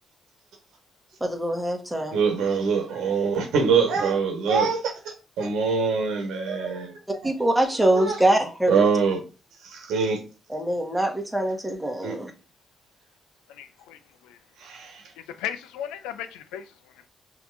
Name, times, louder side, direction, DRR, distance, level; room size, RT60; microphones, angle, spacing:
voice 1, 1.2-2.2 7.2-8.8 10.5-12.3, right 1 dB, 10° right, 1.3 m, -24 dB
voice 2, 2.1-4.9 5.4-6.9 8.0-8.2 8.7-9.2 9.6-10.2 12.0-12.2 14.6-15.0, right 5 dB, 80° right, 1.2 m, -23 dB
voice 3, 13.5-14.0 14.2-14.4 15.3-16.6, left 10 dB, 90° left, 0.4 m, -35 dB
5.8 x 2.8 x 2.5 m
supercardioid pair, 50°, 0 cm